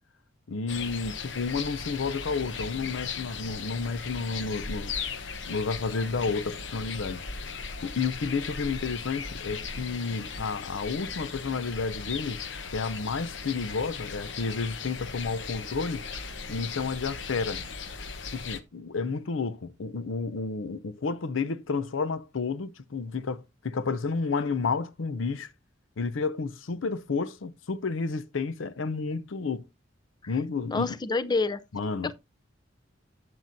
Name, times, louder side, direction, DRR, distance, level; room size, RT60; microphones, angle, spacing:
voice 1, 0.5-5.0 5.5-7.2 7.8-12.4 12.7-16.1 16.5-17.6 18.3-25.5 26.0-29.6 30.3-30.9 31.7-32.1, left 4 dB, 85° left, 0.6 m, -31 dB
sound 1, 0.7-18.6, left 5 dB, 65° left, 1.0 m, -37 dB
voice 2, 30.7-31.6 32.0-32.1, left 3 dB, 20° left, 0.4 m, -28 dB
11.5 x 7.8 x 2.6 m
head